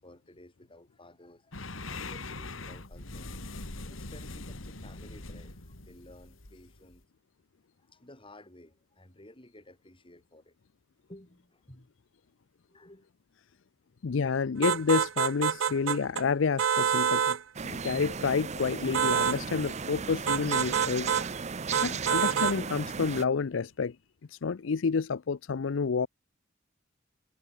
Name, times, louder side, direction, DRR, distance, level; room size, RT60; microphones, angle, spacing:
voice 1, 0.0-3.3 3.8-7.1 7.8-10.6 11.1-11.9 12.7-13.1 25.6-25.7, left 1 dB, 25° left, 6.8 m, -54 dB
sound 1, 1.5-7.0, left 2 dB, 90° left, 3.1 m, -42 dB
voice 2, 14.0-17.4 17.6-21.2 21.8-24.0 24.3-26.1, left 5 dB, 70° left, 0.5 m, -29 dB
sound 2, 14.6-16.2 16.6-17.4 18.9-19.4 20.3-21.3 21.7-22.6, right 7 dB, 80° right, 0.6 m, -27 dB
sound 3, 17.5-23.2, right 5 dB, 35° right, 0.7 m, -36 dB
head